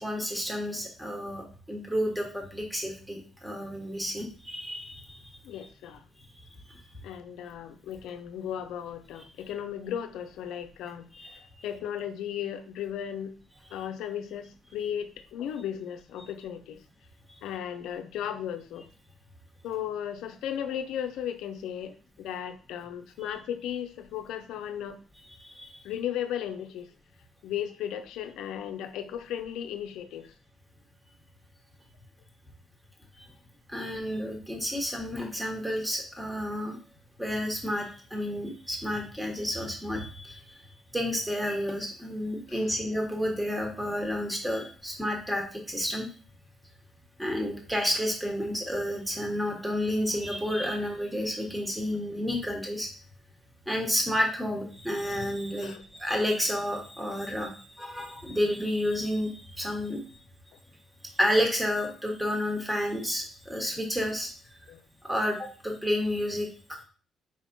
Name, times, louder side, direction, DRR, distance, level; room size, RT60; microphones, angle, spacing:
voice 1, 0.0-5.3 11.1-11.3 23.2-23.3 25.4-25.8 33.1-33.2 33.7-36.8 37.2-46.1 47.2-52.9 53.7-60.2 61.1-64.3 65.0-66.5, equal, 5° right, 1 dB, 1.3 m, -30 dB
voice 2, 5.4-6.0 7.0-13.4 13.7-16.8 17.4-18.9 19.6-25.0 25.8-26.9 27.4-30.3 42.5-42.7 55.6-55.8 64.7-64.8, left 9 dB, 90° left, 9 dB, 0.4 m, -36 dB
4.8 x 3.5 x 2.6 m, 0.40 s
cardioid pair, 90°, 0 cm